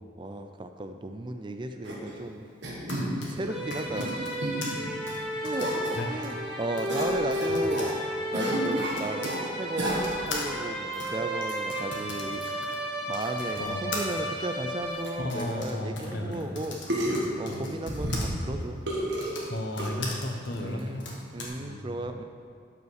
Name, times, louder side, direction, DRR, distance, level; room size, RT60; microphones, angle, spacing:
voice 1, 0.2-2.5 3.3-4.2 5.4-8.0 8.3-9.3 9.5-12.4 13.1-16.8 17.4-18.8 20.6-22.2, right 1 dB, 25° right, 6 dB, 0.4 m, -35 dB
sound 1, 1.8-2.1 2.6-3.1 3.7-4.1 4.4-4.8 5.6-6.0 6.9-7.9 8.3-9.4 9.8-10.3 10.9-11.1 11.4-11.5 12.4-12.5 13.2-13.3 13.5-13.6 14.1-14.2 14.8-14.9 15.0-15.1 16.0-16.1 16.9-17.3 17.8-18.5 18.9-19.3 19.8-19.9, right 1 dB, 70° right, 1.9 m, -31 dB
Typing, 2.6-9.4 10.0-18.3 19.1-21.5, left 3 dB, 80° left, 1.6 m, -41 dB
sound 2, 3.4-15.5, equal, ahead, 1.7 m, -33 dB
voice 2, 13.6-14.1 15.2-16.5 17.5-17.6 19.5-21.0 21.6-21.8, left 1 dB, 55° left, 3 dB, 0.9 m, -34 dB
12.0 x 5.5 x 4.8 m, 2.3 s
head